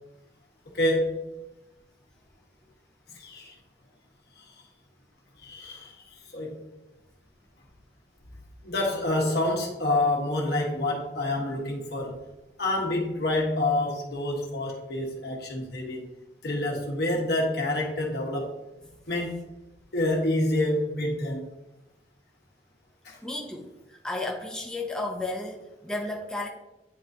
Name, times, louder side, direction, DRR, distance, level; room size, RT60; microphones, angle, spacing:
voice 1, 0.7-1.2 3.2-3.5 4.4-4.5 5.4-6.6 8.6-12.2 12.6-16.1 16.4-18.5 19.1-19.4 19.9-21.5 23.0-23.2, left 1 dB, 65° left, -1 dB, 1.5 m, -27 dB
voice 2, 23.2-23.7 24.0-26.5, left 2 dB, 5° left, 0 dB, 0.6 m, -33 dB
9.6 x 3.9 x 2.8 m, 0.96 s
head